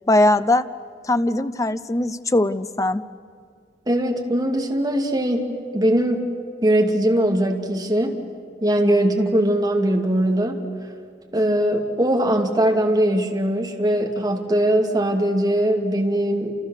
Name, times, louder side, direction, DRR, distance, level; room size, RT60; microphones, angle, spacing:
voice 1, 0.1-0.7 1.0-3.0, left 1 dB, 20° left, 12 dB, 0.7 m, -20 dB
voice 2, 3.9-5.5 5.7-6.3 6.6-8.2 8.6-10.6 11.3-16.5, right 1 dB, 25° right, 1 dB, 2.5 m, -20 dB
29.0 x 28.5 x 6.6 m, 2.1 s
head